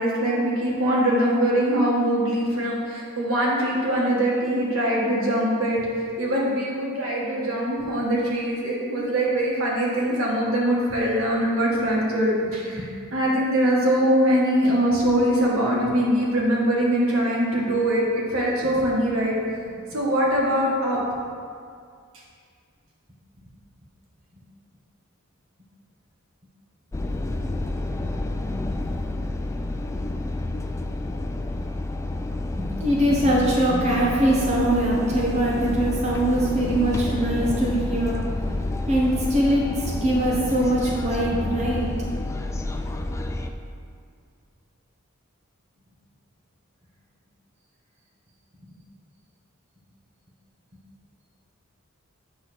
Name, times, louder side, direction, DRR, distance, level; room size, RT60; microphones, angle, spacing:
voice 1, 0.0-5.8 6.2-12.8 13.1-19.4 19.9-21.0, right 1 dB, 80° right, -4 dB, 1.6 m, -22 dB
sound 1, 26.9-43.5, left 2 dB, 15° left, 0.3 m, -29 dB
voice 2, 32.4-38.2 38.5-38.6 38.9-41.9, right 1 dB, 35° right, -5 dB, 1.0 m, -22 dB
8.4 x 3.4 x 6.1 m, 2.2 s
head